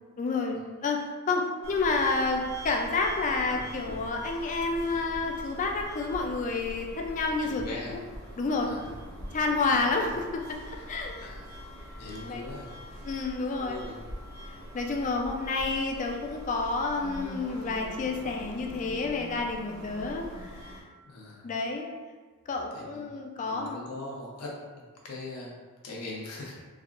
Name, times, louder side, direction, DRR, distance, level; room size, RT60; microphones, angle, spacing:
voice 1, 0.2-7.6 8.4-8.7 9.3-11.1 12.3-12.5 13.0-13.8 14.5-20.6 21.4-21.9 22.5-23.9, left 3 dB, 35° left, 2 dB, 0.3 m, -29 dB
sound 1, 1.6-20.8, equal, 60° right, 0.7 m, -43 dB
voice 2, 7.4-8.0 8.6-8.8 9.7-10.1 10.8-10.9 11.2-11.5 12.0-12.7 13.5-14.0 18.1-18.3 21.0-21.5 22.7-25.5 25.8-26.6, left 2 dB, 90° left, -3 dB, 0.7 m, -41 dB
3.5 x 2.4 x 2.4 m, 1.4 s
head